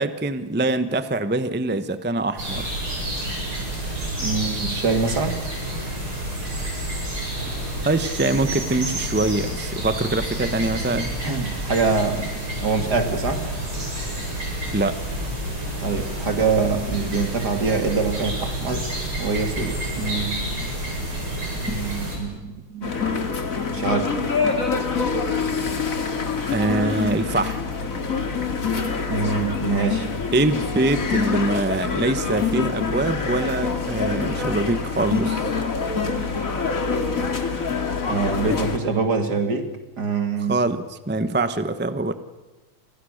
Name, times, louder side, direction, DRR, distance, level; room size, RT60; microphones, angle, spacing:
voice 1, 0.0-2.7 7.8-11.1 14.7-15.0 21.7-21.8 26.5-27.6 30.3-35.6 40.5-42.1, right 2 dB, 15° right, 11 dB, 0.3 m, -24 dB
sound 1, 2.4-22.2, right 1 dB, 80° right, 8.7 m, -29 dB
voice 2, 4.2-5.3 11.2-12.3 12.6-13.4 15.8-18.9 19.2-20.4 21.6-22.9 23.7-24.1 29.1-30.1 38.1-39.7 40.0-40.6, right 4 dB, 50° right, 6 dB, 3.0 m, -24 dB
sound 2, 22.8-38.8, left 5 dB, 40° left, 2.5 m, -25 dB
29.5 x 25.5 x 6.5 m, 1.1 s
omnidirectional pair, 2.3 m